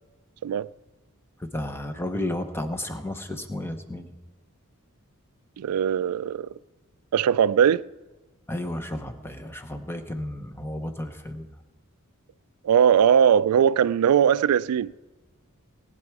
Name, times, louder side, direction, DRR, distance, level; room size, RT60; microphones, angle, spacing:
voice 1, 1.4-4.1 8.5-11.5, left 1 dB, 10° left, 0.9 m, -32 dB
voice 2, 5.6-6.5 7.1-7.9 12.6-14.9, right 8 dB, 90° right, 0.3 m, -20 dB
19.5 x 9.1 x 4.7 m
head